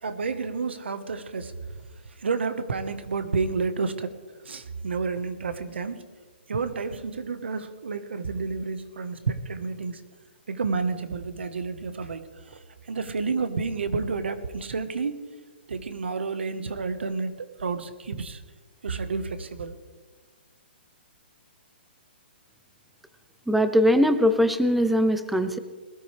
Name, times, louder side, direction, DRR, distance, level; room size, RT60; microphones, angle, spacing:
voice 1, 0.0-1.6 2.2-6.0 6.5-10.0 10.5-15.2 15.7-18.4 18.8-19.7, right 4 dB, 90° right, 11 dB, 1.4 m, -30 dB
voice 2, 23.5-25.6, equal, ahead, 11 dB, 0.5 m, -21 dB
21.0 x 13.0 x 3.4 m, 1.4 s
hypercardioid pair, 160°, 6 cm